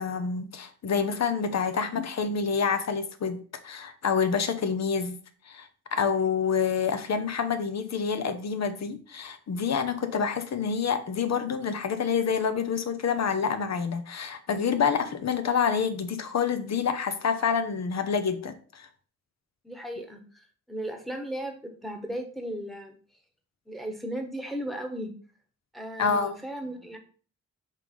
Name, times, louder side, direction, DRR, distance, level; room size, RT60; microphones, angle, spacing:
voice 1, 0.0-5.2 5.5-18.9 26.0-26.3, left 6 dB, 65° left, 10 dB, 0.9 m, -27 dB
voice 2, 19.6-23.0 23.7-25.1 25.7-27.0, right 1 dB, ahead, 4 dB, 1.3 m, -36 dB
5.6 x 3.3 x 5.3 m, 0.41 s
wide cardioid pair, 100°, 29 cm